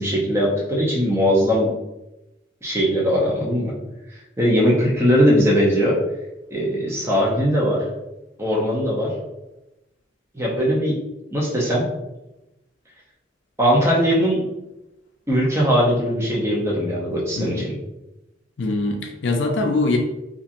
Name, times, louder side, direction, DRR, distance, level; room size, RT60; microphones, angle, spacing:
voice 1, 0.0-1.7 2.6-3.7 4.4-6.0 6.5-7.8 8.4-9.1 10.3-10.9 11.3-11.8 13.6-14.4 15.3-17.7, equal, 15° right, -4 dB, 0.6 m, -20 dB
voice 2, 18.6-20.0, left 2 dB, 65° left, 3 dB, 0.4 m, -22 dB
2.9 x 2.4 x 2.5 m, 0.96 s
head